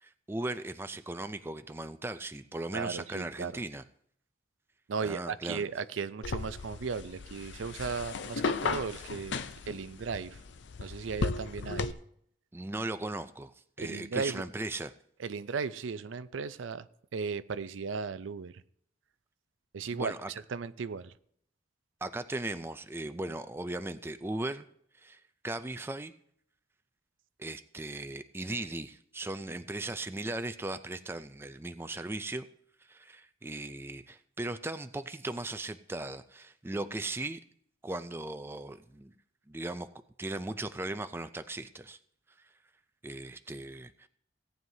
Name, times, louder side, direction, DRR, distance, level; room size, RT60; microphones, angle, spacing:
voice 1, 0.0-3.8 5.0-5.6 12.5-14.9 19.9-20.3 22.0-24.7 25.0-26.1 27.4-32.5 32.9-37.4 37.8-39.1 39.5-39.9 40.2-42.0 43.0-44.1, right 2 dB, 10° right, 10 dB, 0.4 m, -38 dB
voice 2, 2.7-3.6 4.9-9.4 9.7-10.4 10.8-12.0 13.8-14.5 15.2-16.9 17.1-18.6 19.7-21.1, right 5 dB, 85° right, 14 dB, 0.5 m, -36 dB
sound 1, 6.2-11.9, left 4 dB, 70° left, 0.5 m, -35 dB
17.5 x 9.2 x 2.7 m, 0.68 s
head